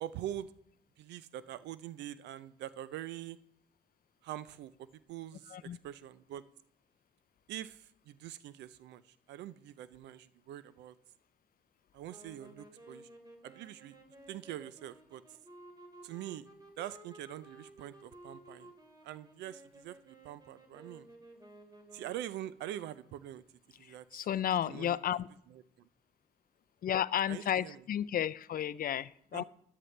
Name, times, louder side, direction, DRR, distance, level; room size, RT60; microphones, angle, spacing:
voice 1, 0.0-0.5 1.0-3.4 4.2-6.4 7.5-10.9 11.9-13.1 13.4-14.0 14.3-15.2 16.0-16.5 16.8-18.7 19.0-21.1 21.9-23.4 23.8-24.2 24.6-25.2 25.5-25.9 27.3-27.8 29.3-29.4, right 12 dB, 85° right, 16 dB, 0.5 m, -44 dB
voice 2, 5.5-5.8 23.8-25.3 26.8-29.4, left 10 dB, 55° left, 17 dB, 0.4 m, -33 dB
sound 1, 12.1-22.4, right 1 dB, 25° right, 2.3 m, -55 dB
13.0 x 9.5 x 3.2 m, 0.71 s
supercardioid pair, 50°, 18 cm